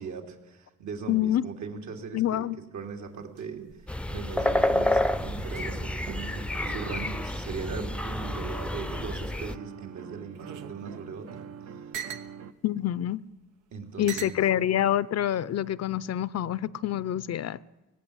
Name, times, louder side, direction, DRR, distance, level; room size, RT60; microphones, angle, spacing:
voice 1, 0.0-2.5 2.7-3.7 4.1-11.8 13.7-14.3, right 5 dB, 70° right, 3 dB, 3.1 m, -39 dB
voice 2, 1.1-1.4 2.1-2.6 12.6-13.2 14.0-17.6, left 11 dB, 55° left, 19 dB, 0.7 m, -26 dB
sound 1, 2.8-7.9 8.2-9.5 10.1-12.3 13.2-13.3 14.1-14.4 15.3-15.7, right 7 dB, 85° right, 1.3 m, -44 dB
sound 2, 3.9-9.5, left 1 dB, 5° left, 0.6 m, -29 dB
sound 3, 4.4-12.5, right 7 dB, 55° right, 0.9 m, -45 dB
19.5 x 16.5 x 8.7 m, 1.0 s
cardioid pair, 90°, 30 cm